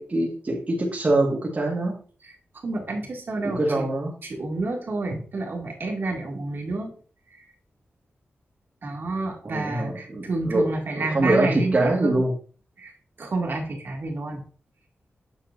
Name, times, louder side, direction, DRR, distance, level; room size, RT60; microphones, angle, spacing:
voice 1, 0.0-2.0 3.4-4.1 9.4-12.3, right 2 dB, 35° right, -2 dB, 1.6 m, -24 dB
voice 2, 2.6-3.9 4.2-6.9 7.3-7.4 8.8-12.2 12.8-12.9 13.2-14.4, right 2 dB, 55° right, 1 dB, 2.2 m, -29 dB
8.6 x 7.5 x 2.6 m, 0.41 s
wide cardioid pair, 120°, 4 cm